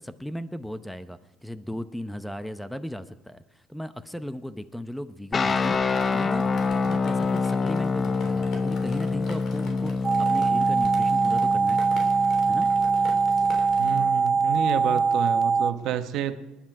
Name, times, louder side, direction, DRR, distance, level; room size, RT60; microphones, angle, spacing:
voice 1, 0.0-5.8 6.1-6.5 6.7-11.8 12.5-12.7, equal, 5° left, 13 dB, 0.8 m, -36 dB
sound 1, 5.3-14.2, left 4 dB, 35° left, 0.7 m, -27 dB
Drip, 5.4-13.9, left 3 dB, 55° left, 3.3 m, -44 dB
sound 2, 10.0-15.7, right 5 dB, 25° right, 0.6 m, -22 dB
voice 2, 13.8-16.4, right 10 dB, 65° right, 9 dB, 1.1 m, -30 dB
20.5 x 10.0 x 4.8 m, 1.1 s
supercardioid pair, 80°, 0 cm